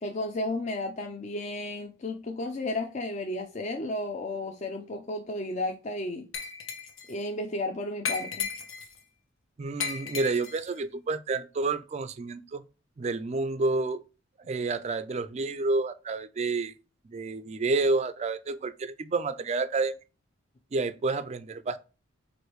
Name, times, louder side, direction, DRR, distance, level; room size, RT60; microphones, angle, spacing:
voice 1, 0.0-6.3 7.1-8.5, left 2 dB, 35° left, 0.4 m, -33 dB
Glass, 6.3-7.1 8.0-9.0 9.8-10.7, left 6 dB, 80° left, 0.9 m, -35 dB
voice 2, 9.6-12.6 13.0-14.0 14.4-16.7 17.0-19.9 20.7-21.8, right 3 dB, 35° right, 0.3 m, -29 dB
4.6 x 2.5 x 3.1 m
head